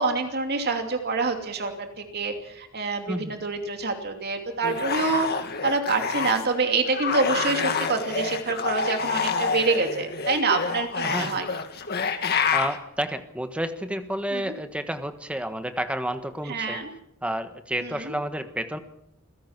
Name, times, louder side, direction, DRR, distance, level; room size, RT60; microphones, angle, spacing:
voice 1, 0.0-5.3 5.6-11.4 14.3-14.5 16.5-16.9 17.8-18.1, right 3 dB, 50° right, 5 dB, 2.8 m, -26 dB
sound 1, 4.6-6.5 6.9-12.8, left 5 dB, 50° left, 2.0 m, -28 dB
voice 2, 11.0-11.4 12.5-16.8 17.2-18.8, right 1 dB, 5° right, 9 dB, 1.4 m, -30 dB
27.5 x 16.5 x 6.0 m, 0.80 s
head